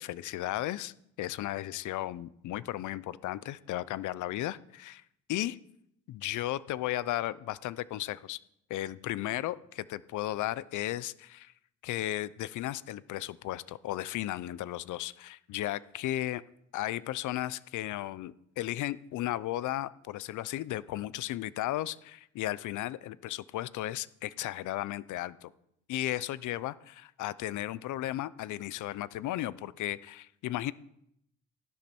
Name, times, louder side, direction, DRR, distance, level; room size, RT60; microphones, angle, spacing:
voice 1, 0.0-5.0 5.3-5.6 6.1-8.4 8.7-11.5 11.8-16.4 16.7-25.5 25.9-30.7, left 14 dB, 80° left, 19 dB, 0.6 m, -35 dB
15.5 x 11.5 x 4.4 m, 0.75 s
cardioid pair, 90°, 30 cm